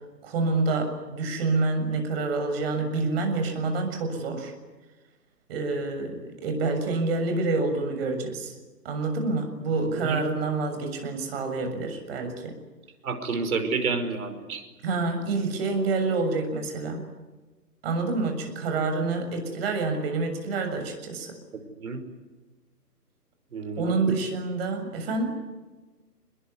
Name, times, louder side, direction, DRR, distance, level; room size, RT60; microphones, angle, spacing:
voice 1, 0.2-4.5 5.5-8.5 8.9-12.5 14.8-17.0 17.8-21.3 23.8-25.4, right 3 dB, 40° right, 5 dB, 6.9 m, -27 dB
voice 2, 13.0-14.6 21.5-22.0 23.5-23.9, right 4 dB, 60° right, 8 dB, 5.5 m, -30 dB
26.5 x 21.5 x 9.8 m, 1.2 s
hypercardioid pair, 145°, 48 cm